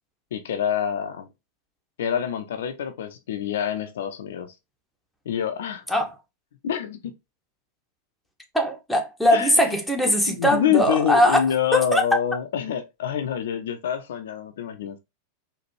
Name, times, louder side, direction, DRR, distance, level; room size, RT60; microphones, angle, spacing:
voice 1, 0.3-1.3 2.0-4.5 5.3-5.8 6.6-7.0 9.3-9.8 10.3-15.0, left 9 dB, 60° left, 0.4 m, -26 dB
voice 2, 8.5-11.4 11.7-12.0, equal, ahead, 0.8 m, -20 dB
4.1 x 2.5 x 3.0 m
figure-of-eight pair, 90°, 0 cm